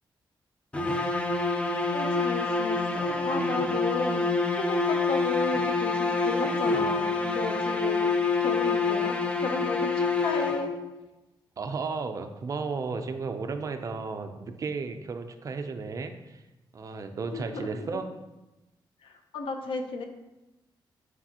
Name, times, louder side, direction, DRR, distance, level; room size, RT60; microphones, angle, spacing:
sound 1, 0.7-11.0, left 3 dB, 15° left, 0.5 m, -27 dB
voice 1, 1.9-8.1 8.4-10.8 17.3-18.0 19.0-20.0, left 4 dB, 85° left, 5 dB, 0.8 m, -34 dB
voice 2, 11.6-16.4 16.7-18.1, right 4 dB, 40° right, 7 dB, 0.5 m, -34 dB
8.2 x 4.8 x 2.9 m, 1.0 s
wide cardioid pair, 160°, 9 cm